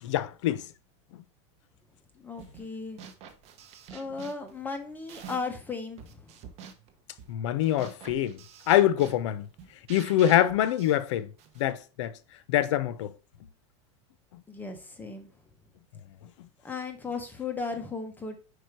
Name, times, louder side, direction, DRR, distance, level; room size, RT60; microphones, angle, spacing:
voice 1, 0.0-0.7 1.1-1.2 7.3-9.5 9.9-11.3 11.6-12.2 12.5-13.1, left 12 dB, 80° left, 0.7 m, -25 dB
voice 2, 2.2-3.0 3.9-6.3 14.5-15.3 16.6-18.4, left 4 dB, 10° left, 0.8 m, -36 dB
sound 1, 2.4-2.7 3.0-5.6 6.0-11.7, right 7 dB, 45° right, 1.0 m, -48 dB
5.0 x 4.7 x 4.5 m
supercardioid pair, 140°, 15 cm